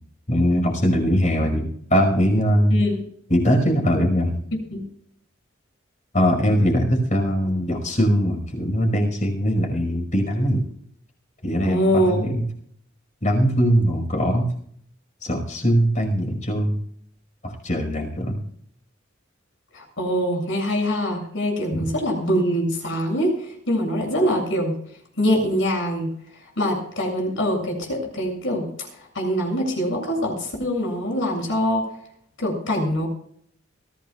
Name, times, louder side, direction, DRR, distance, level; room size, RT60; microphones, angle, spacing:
voice 1, 0.3-2.8 3.3-4.4 6.1-10.6 11.4-12.4 13.2-14.5 15.2-16.8 17.4-18.4 21.7-21.9, equal, 40° left, 2 dB, 5.3 m, -21 dB
voice 2, 2.7-3.0 4.7-4.8 11.6-12.2 19.7-24.7 25.2-26.1 26.6-28.7 29.1-31.9 32.4-33.1, equal, 70° left, 2 dB, 7.3 m, -23 dB
23.5 x 16.0 x 2.4 m, 0.65 s
head